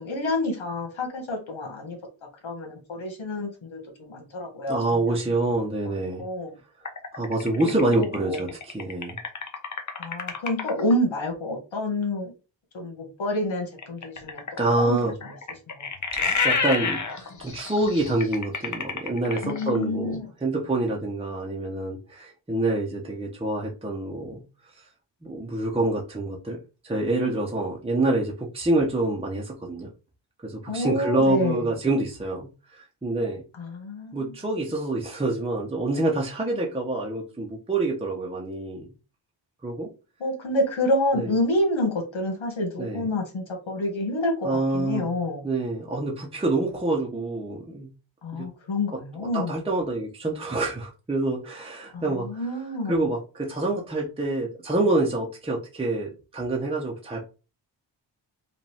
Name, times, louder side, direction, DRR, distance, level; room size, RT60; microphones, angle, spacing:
voice 1, 0.0-2.0 2.4-5.4 6.2-6.5 7.6-8.4 10.0-12.3 12.7-14.4 14.8-15.1 15.8-15.9 16.2-16.4 19.4-20.2 30.7-31.7 33.6-34.4 40.2-45.5 48.2-49.5 51.9-53.0, left 1 dB, 80° left, 1 dB, 1.8 m, -28 dB
voice 2, 4.7-6.3 7.1-9.2 14.6-15.1 16.1-24.4 25.2-26.6 26.8-29.9 30.4-33.4 34.1-38.9 39.6-39.9 41.1-41.4 42.8-43.1 44.4-45.2 45.4-47.9 48.3-48.5 49.3-52.6 52.9-57.3, right 2 dB, 10° right, -2 dB, 0.9 m, -27 dB
sound 1, 6.8-10.9 13.8-19.8, left 5 dB, 40° left, 0.8 m, -29 dB
5.0 x 2.6 x 3.4 m, 0.32 s
wide cardioid pair, 120°, 46 cm